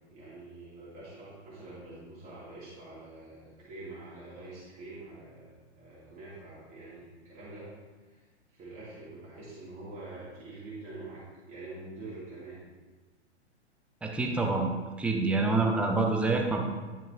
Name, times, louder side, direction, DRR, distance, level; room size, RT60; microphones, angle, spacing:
voice 1, 0.1-7.7 8.1-8.2 8.5-12.6, right 2 dB, 25° right, -9 dB, 2.5 m, -46 dB
voice 2, 14.0-14.7 15.0-16.6, right 3 dB, 5° right, 2 dB, 0.5 m, -26 dB
11.0 x 5.8 x 2.7 m, 1.3 s
figure-of-eight pair, 110°, 35 cm